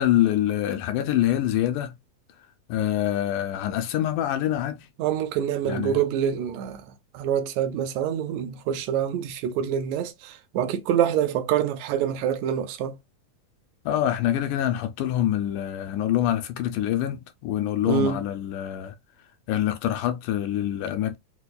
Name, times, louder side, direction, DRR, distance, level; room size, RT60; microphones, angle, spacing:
voice 1, 0.0-1.9 2.7-4.9 5.7-6.0 13.9-19.0 19.5-21.2, left 12 dB, 85° left, 2.0 m, -25 dB
voice 2, 5.0-13.0 17.9-18.2, right 9 dB, 80° right, 1.7 m, -26 dB
5.0 x 2.2 x 2.2 m
omnidirectional pair, 3.5 m